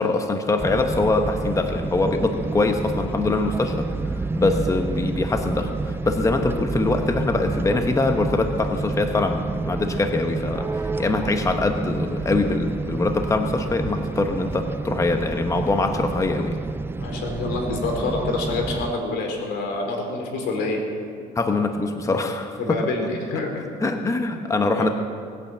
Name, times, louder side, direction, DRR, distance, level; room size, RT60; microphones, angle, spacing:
voice 1, 0.0-16.6 21.4-23.1 23.8-24.9, left 3 dB, 20° left, 5 dB, 1.1 m, -23 dB
sound 1, 0.6-18.9, right 3 dB, 15° right, 0.4 m, -29 dB
voice 2, 17.0-20.8 22.6-23.6 24.8-24.9, left 3 dB, 85° left, 3 dB, 3.5 m, -27 dB
19.5 x 9.0 x 7.8 m, 2.3 s
cardioid pair, 110°, 17 cm